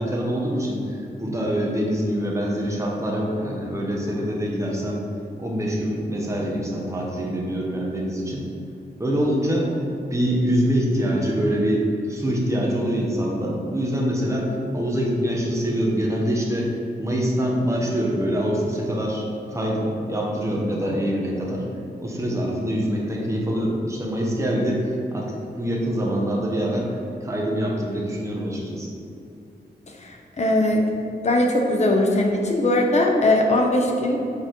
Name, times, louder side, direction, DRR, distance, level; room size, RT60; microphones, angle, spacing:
voice 1, 0.0-5.0 5.4-8.5 9.0-9.7 10.1-16.7 17.0-21.6 22.0-28.9, equal, 15° right, -3 dB, 1.0 m, -25 dB
voice 2, 30.0-30.9 31.2-34.2, left 1 dB, 40° left, 1 dB, 0.8 m, -20 dB
6.6 x 4.1 x 4.5 m, 2.7 s
wide cardioid pair, 175°, 17 cm